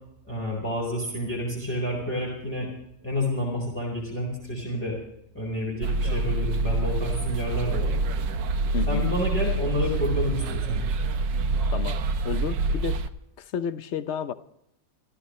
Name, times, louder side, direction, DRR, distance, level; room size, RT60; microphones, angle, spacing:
voice 1, 0.2-2.7 3.0-5.0 5.3-8.0 8.9-10.8, left 1 dB, 5° left, -3 dB, 4.0 m, -29 dB
sound 1, 5.8-13.1, right 3 dB, 90° right, 1.5 m, -26 dB
voice 2, 8.7-9.1 11.7-12.0 12.2-13.0 13.4-14.3, left 7 dB, 55° left, 12 dB, 0.8 m, -31 dB
26.5 x 13.5 x 3.2 m, 0.78 s
omnidirectional pair, 1.9 m